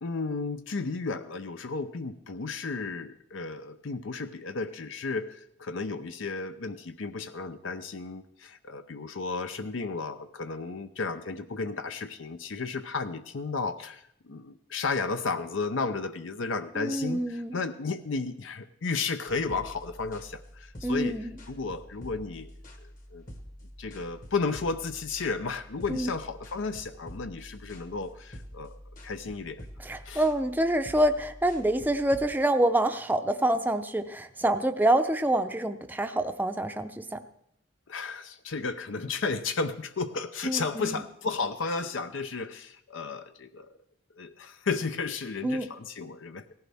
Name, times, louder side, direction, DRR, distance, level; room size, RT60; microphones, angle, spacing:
voice 1, 0.0-22.5 22.8-23.2 23.8-29.7 30.0-30.2 37.9-43.7 44.2-46.5, left 4 dB, 75° left, 9 dB, 0.6 m, -33 dB
voice 2, 16.8-17.6 20.8-21.4 25.9-26.1 29.8-37.2 40.4-41.0 45.4-45.7, right 1 dB, 10° right, 6 dB, 0.6 m, -26 dB
sound 1, 19.3-32.3, equal, 40° left, 1.3 m, -47 dB
18.0 x 15.5 x 3.5 m, 0.74 s
head